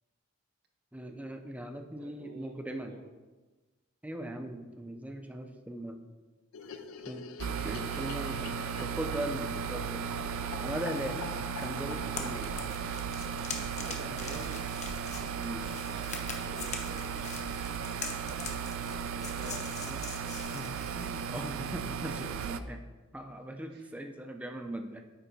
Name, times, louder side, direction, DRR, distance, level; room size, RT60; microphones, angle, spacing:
voice 1, 0.9-3.0 4.0-6.0 7.1-7.3 7.6-10.0 10.6-11.3 11.6-12.5 15.4-15.7 16.5-16.6 17.1-17.3 18.3-18.5 19.9-20.0 20.3-22.8 23.1-25.0, right 1 dB, 5° right, 5 dB, 0.5 m, -39 dB
voice 2, 2.0-3.1 13.7-14.6 15.5-17.4 19.1-19.7 23.7-23.8, right 2 dB, 50° right, 2 dB, 1.0 m, -49 dB
sound 1, 6.5-14.8 15.0-15.1 15.4-15.5 15.7-15.8 16.0-16.6, left 7 dB, 80° left, 0.4 m, -47 dB
sound 2, 7.4-22.6, right 7 dB, 70° right, 0.3 m, -36 dB
sound 3, 11.6-22.6, left 5 dB, 35° left, 0.7 m, -44 dB
9.1 x 3.4 x 4.0 m, 1.2 s
head